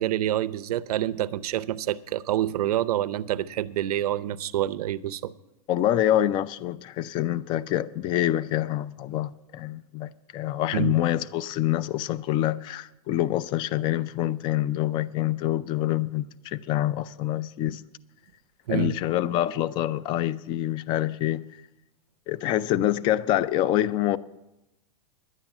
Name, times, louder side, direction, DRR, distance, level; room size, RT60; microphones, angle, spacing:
voice 1, 0.0-5.3 10.7-11.0 18.7-18.9, right 12 dB, 80° right, 0.6 m, -27 dB
voice 2, 5.7-17.8 18.7-21.4 22.3-24.2, left 13 dB, 25° left, 0.3 m, -26 dB
11.0 x 9.1 x 7.1 m
supercardioid pair, 145°, 19 cm